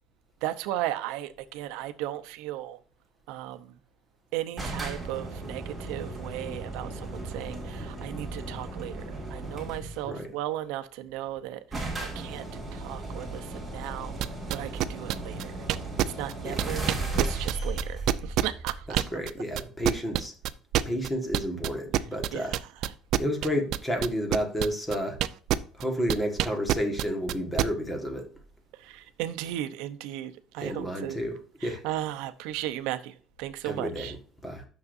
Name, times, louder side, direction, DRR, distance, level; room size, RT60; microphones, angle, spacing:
voice 1, 0.4-2.8 3.3-3.8 4.3-12.4 12.7-14.2 14.5-15.5 16.0-16.9 17.2-19.0 22.3-22.9 28.7-31.2 31.6-34.1, right 13 dB, 90° right, 0.7 m, -36 dB
sound 1, 4.6-10.1 11.1-11.2 11.4-11.5 11.7-19.2, right 2 dB, 10° right, 2.2 m, -36 dB
sound 2, 14.2-19.3 19.6-25.8 26.1-27.7, right 13 dB, 55° right, 0.4 m, -26 dB
voice 2, 19.1-20.3 20.8-22.5 23.2-25.2 25.7-28.3 30.6-31.8 33.6-34.2 34.4-34.7, equal, 10° left, 1.5 m, -31 dB
9.7 x 6.5 x 2.6 m
cardioid pair, 170°, 0 cm